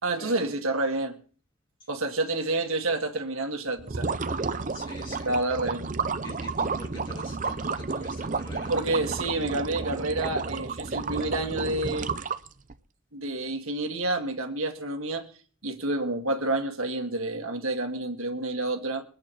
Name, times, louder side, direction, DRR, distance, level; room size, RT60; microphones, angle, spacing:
voice 1, 0.0-1.2 1.9-4.1 5.3-5.9 8.7-12.1 13.1-15.3 15.6-19.0, right 2 dB, 80° right, 1.9 m, -29 dB
sound 1, 3.8-12.7, right 4 dB, 35° right, 0.6 m, -31 dB
voice 2, 4.7-5.3 6.2-8.8, left 1 dB, 20° left, 3.6 m, -44 dB
22.0 x 8.7 x 4.4 m
head